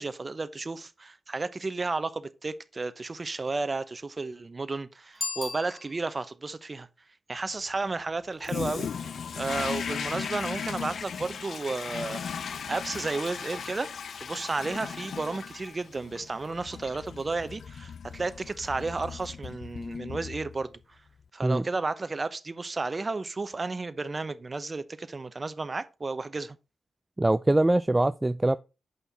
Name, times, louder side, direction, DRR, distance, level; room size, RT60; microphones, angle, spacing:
voice 1, 0.0-6.9 7.3-9.1 9.4-12.2 12.7-13.9 14.2-20.7 21.3-26.6, right 3 dB, 40° right, 0.8 m, -33 dB
Bicycle bell, 5.1-6.4, left 3 dB, 50° left, 1.9 m, -36 dB
Toilet flush, 8.4-20.8, left 7 dB, 70° left, 0.4 m, -37 dB
voice 2, 27.2-28.6, right 1 dB, 20° right, 0.3 m, -23 dB
8.0 x 5.6 x 4.0 m
supercardioid pair, 45°, 0 cm